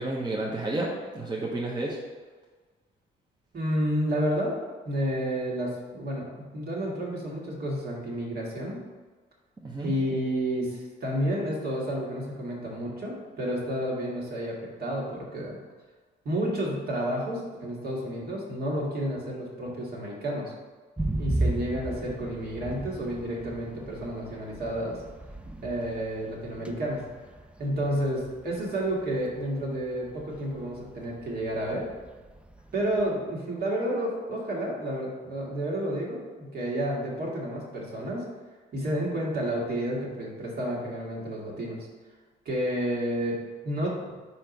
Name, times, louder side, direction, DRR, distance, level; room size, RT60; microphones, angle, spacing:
voice 1, 0.0-2.0 9.6-10.0 25.5-25.6 26.6-26.7, right 2 dB, 20° right, -3 dB, 0.9 m, -31 dB
voice 2, 3.5-4.6 4.8-6.3 6.5-8.8 9.8-15.6 16.3-20.5 21.2-25.0 25.6-27.0 27.6-31.9 32.7-38.2 38.7-41.8 42.5-44.1, equal, 50° right, -3 dB, 1.8 m, -30 dB
sound 1, 21.0-33.1, right 1 dB, 5° right, 0.4 m, -36 dB
4.5 x 4.4 x 5.2 m, 1.4 s
cardioid pair, 90°, 20 cm